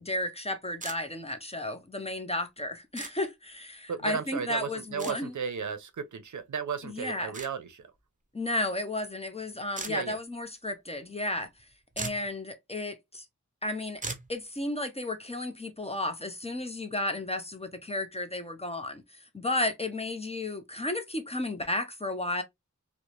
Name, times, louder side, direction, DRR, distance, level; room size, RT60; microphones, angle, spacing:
voice 1, 0.0-5.3 6.8-7.3 8.3-11.5 12.0-13.2 13.6-14.0 14.3-22.4, left 1 dB, 20° left, 0.5 m, -33 dB
sound 1, 0.8-1.0 3.0-3.1 5.0-5.2 7.3-7.5 9.8-9.9 11.6-11.7 11.9-12.3 14.0-14.3, right 3 dB, 25° right, 0.6 m, -37 dB
voice 2, 3.9-7.9 9.9-10.2, right 6 dB, 70° right, 0.5 m, -34 dB
2.9 x 2.1 x 2.4 m
wide cardioid pair, 75°, 31 cm